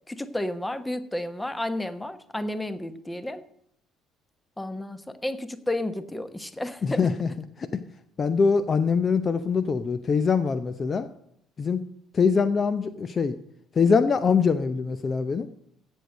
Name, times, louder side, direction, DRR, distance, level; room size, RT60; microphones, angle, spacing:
voice 1, 0.1-3.4 4.6-7.1, left 1 dB, 10° left, 1.1 m, -32 dB
voice 2, 6.8-7.3 7.6-7.8 8.2-11.1 11.6-11.8 12.1-13.4 13.8-15.5, left 5 dB, 35° left, 0.6 m, -23 dB
16.0 x 6.4 x 6.5 m
figure-of-eight pair, 50°, 0 cm